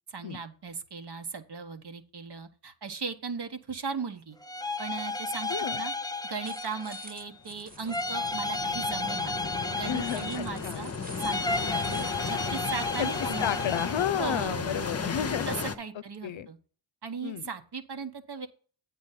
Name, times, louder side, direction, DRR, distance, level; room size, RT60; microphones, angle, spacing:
voice 1, 0.1-4.4 4.8-5.5 5.7-5.9 6.2-9.3 9.7-10.9 11.2-13.5 14.2-14.8 15.5-16.6 17.0-18.5, right 5 dB, 55° right, 1.3 m, -37 dB
sound 1, 4.4-7.2 7.9-10.7 11.2-14.1, left 2 dB, 10° left, 0.5 m, -33 dB
voice 2, 5.5-5.8 9.9-10.9 13.0-15.5 15.9-16.5 17.2-17.5, left 10 dB, 75° left, 0.7 m, -32 dB
sound 2, 6.4-8.3 9.8-12.2, right 2 dB, 20° right, 0.9 m, -49 dB
sound 3, 7.5-15.7, left 5 dB, 30° left, 0.8 m, -35 dB
8.7 x 4.1 x 5.8 m
cardioid pair, 45°, 47 cm